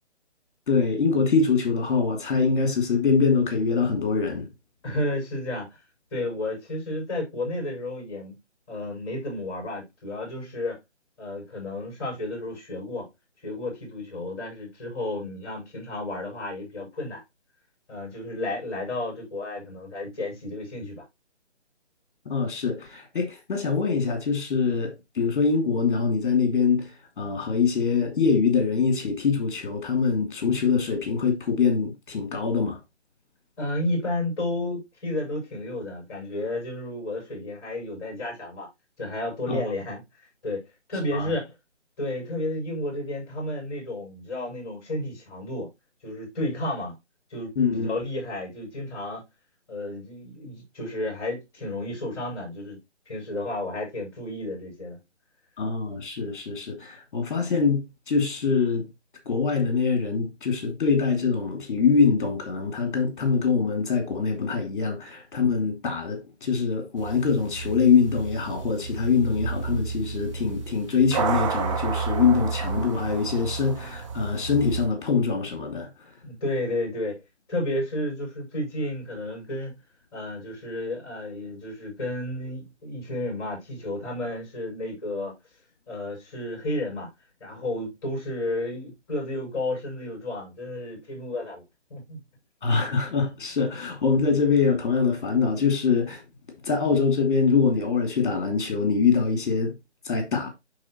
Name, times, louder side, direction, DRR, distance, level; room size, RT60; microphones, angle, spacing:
voice 1, 0.7-4.5 22.2-32.8 39.5-39.6 41.1-41.3 47.6-48.0 55.6-58.9 59.2-75.9 92.6-96.2 96.6-99.7 100.0-100.5, left 5 dB, 45° left, 2.9 m, -24 dB
voice 2, 4.8-5.8 6.1-8.4 8.7-10.8 11.2-13.1 13.4-17.2 17.9-21.0 33.6-38.7 39.0-40.0 40.4-41.5 42.0-45.7 46.0-47.0 47.3-49.2 49.7-52.8 53.1-55.0 76.2-77.2 77.5-79.7 80.1-85.3 85.9-87.1 87.4-91.6 91.9-92.2, left 1 dB, 20° left, 5.8 m, -32 dB
sound 1, 67.0-74.9, right 5 dB, 25° right, 1.0 m, -31 dB
12.0 x 4.1 x 3.0 m
figure-of-eight pair, 150°, 35 cm